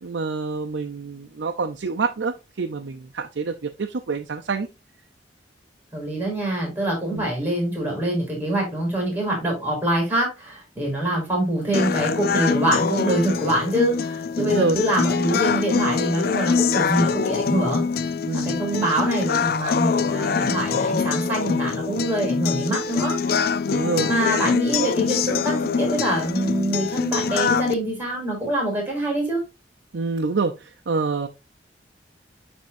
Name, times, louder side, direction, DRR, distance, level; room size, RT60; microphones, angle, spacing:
voice 1, 0.0-4.7 7.1-7.3 14.4-14.8 18.2-18.6 23.7-24.1 29.9-31.3, right 4 dB, 85° right, 3 dB, 0.6 m, -27 dB
voice 2, 5.9-17.8 18.4-23.2 24.0-29.4, right 1 dB, 10° right, -1 dB, 3.5 m, -24 dB
sound 1, 11.7-27.7, left 5 dB, 55° left, 0.4 m, -24 dB
10.5 x 3.5 x 2.6 m, 0.25 s
head